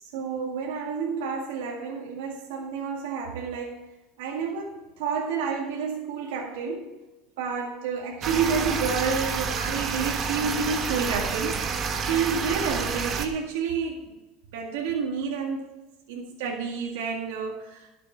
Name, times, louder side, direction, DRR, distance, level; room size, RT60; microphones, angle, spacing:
voice 1, 0.0-3.9 4.2-6.9 7.4-14.2 14.5-15.7 16.1-17.9, right 5 dB, 85° right, -1 dB, 1.9 m, -30 dB
sound 1, 8.2-13.3, right 5 dB, 35° right, 1.2 m, -29 dB
12.0 x 6.7 x 5.6 m, 1.1 s
supercardioid pair, 125°, 0 cm